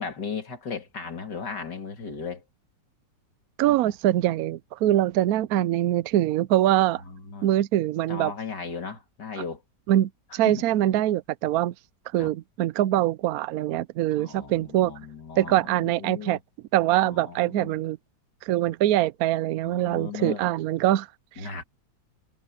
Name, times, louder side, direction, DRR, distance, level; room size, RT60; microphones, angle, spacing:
voice 1, 0.0-2.4 3.6-3.8 7.1-7.5 8.1-9.6 10.3-10.6 12.2-12.3 14.2-16.4 17.0-17.7 19.6-20.5 21.4-21.6, left 5 dB, 65° left, 3.2 m, -36 dB
voice 2, 3.6-7.0 7.4-8.3 9.9-11.7 12.1-14.9 15.4-16.4 16.7-18.0 18.5-21.1, right 13 dB, 75° right, 0.8 m, -23 dB
omnidirectional pair, 2.0 m